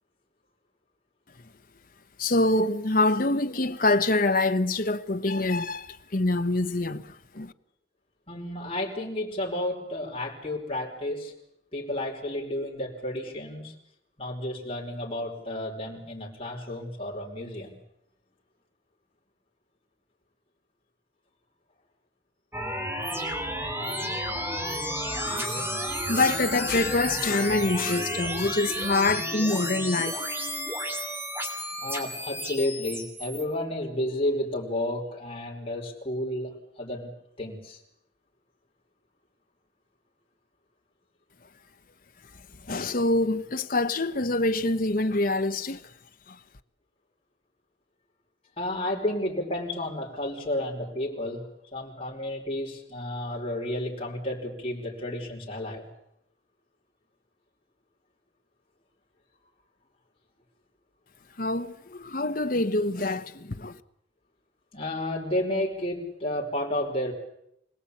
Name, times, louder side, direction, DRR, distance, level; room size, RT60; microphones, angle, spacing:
voice 1, 2.2-7.5 25.3-25.7 26.0-30.3 42.3-45.9 46.3-46.4 61.4-63.8, left 2 dB, 45° left, 1.0 m, -26 dB
voice 2, 8.3-11.3 11.7-13.7 14.2-17.8 31.8-37.1 37.4-37.8 48.6-55.8 64.7-67.1, left 1 dB, 30° left, 5.1 m, -31 dB
sound 1, 22.5-33.4, equal, 10° right, 2.9 m, -32 dB
26.0 x 18.5 x 8.6 m
head